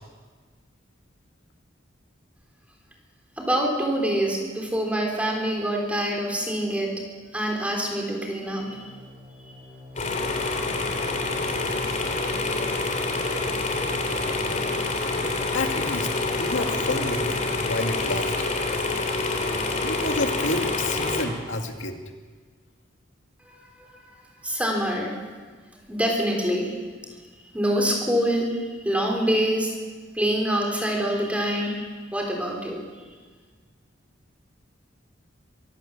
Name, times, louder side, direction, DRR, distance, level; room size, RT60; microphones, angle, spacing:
voice 1, 3.4-7.0 7.3-8.9 9.4-9.5 23.4-24.2 24.4-25.2 25.9-26.8 27.5-29.7 30.1-32.8, equal, 5° right, 0 dB, 3.8 m, -26 dB
sound 1, 8.7-18.1, left 2 dB, 25° right, 7.4 m, -42 dB
sound 2, 10.0-21.2, left 3 dB, 40° left, 3.1 m, -27 dB
voice 2, 15.5-16.1 16.4-18.5 19.8-22.0, left 2 dB, 80° left, 4 dB, 2.2 m, -29 dB
23.5 x 16.0 x 7.3 m, 1.5 s
head